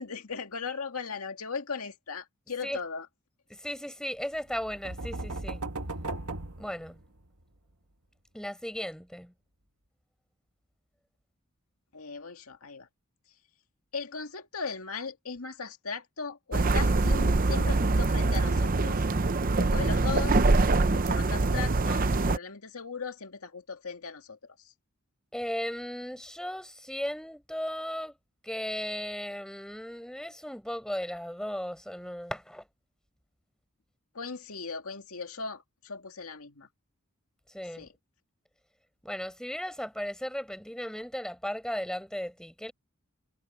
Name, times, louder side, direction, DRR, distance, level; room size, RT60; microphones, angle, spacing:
voice 1, 0.0-3.1 11.9-12.9 13.9-19.1 19.4-24.7 34.1-36.7 37.8-37.9, left 5 dB, 90° left, 2.1 m, -38 dB
voice 2, 3.5-5.6 6.6-7.0 8.3-9.3 25.3-28.2 28.4-32.7 37.5-37.9 39.0-42.7, equal, 5° left, 4.9 m, -36 dB
sound 1, 4.5-7.4, right 2 dB, 85° right, 2.0 m, -37 dB
sound 2, 16.5-22.4, right 3 dB, 40° right, 0.7 m, -24 dB
head